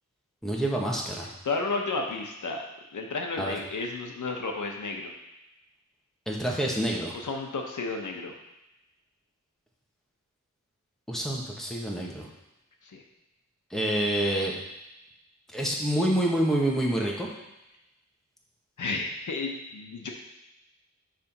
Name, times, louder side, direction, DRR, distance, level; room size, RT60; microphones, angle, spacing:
voice 1, 0.4-1.3 3.4-3.5 6.3-7.1 11.1-12.3 13.7-14.5 15.5-17.3, right 1 dB, ahead, -2 dB, 1.3 m, -27 dB
voice 2, 1.4-2.6 2.9-5.1 7.1-8.4 12.8-13.0 18.8-20.1, left 3 dB, 80° left, 2 dB, 0.9 m, -32 dB
6.7 x 3.4 x 5.8 m, 0.95 s
wide cardioid pair, 85°, 30 cm